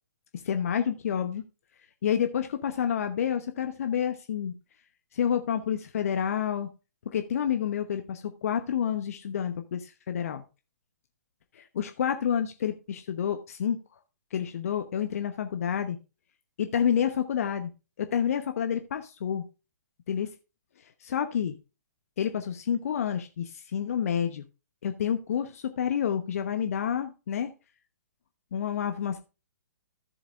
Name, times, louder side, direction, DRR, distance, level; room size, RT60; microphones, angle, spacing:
voice 1, 0.4-1.4 2.0-4.5 5.1-6.7 7.1-10.4 11.5-13.8 14.3-16.0 16.6-17.7 18.0-19.4 20.1-20.3 21.0-21.6 22.2-24.4 24.8-27.5 28.5-29.2, left 8 dB, 55° left, 8 dB, 1.0 m, -29 dB
14.0 x 7.2 x 2.5 m, 0.30 s
figure-of-eight pair, 125°, 10 cm